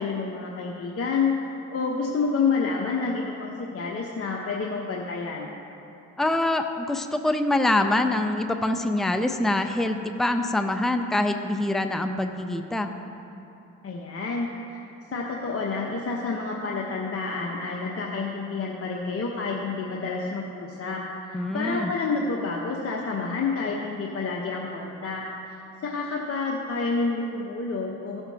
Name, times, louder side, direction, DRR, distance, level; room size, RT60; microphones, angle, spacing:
voice 1, 0.0-1.4 1.7-5.5 13.8-14.8 15.1-25.2 25.8-28.2, left 4 dB, 45° left, -1 dB, 1.0 m, -29 dB
voice 2, 6.2-12.9 21.3-21.9, left 1 dB, ahead, 7 dB, 0.6 m, -25 dB
16.0 x 6.9 x 2.8 m, 2.8 s
supercardioid pair, 65°, 32 cm